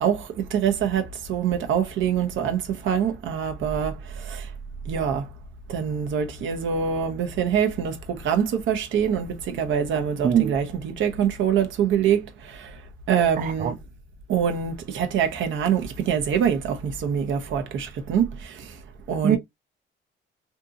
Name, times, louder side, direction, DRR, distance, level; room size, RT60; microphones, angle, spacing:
voice 1, 0.0-4.5 4.9-5.3 5.7-12.7 13.1-13.8 14.3-18.8 19.1-19.4, right 8 dB, 75° right, 0.7 m, -25 dB
voice 2, 13.4-13.7 19.2-19.4, right 9 dB, 45° right, 0.4 m, -21 dB
2.7 x 2.6 x 2.3 m
cardioid pair, 90°, 20 cm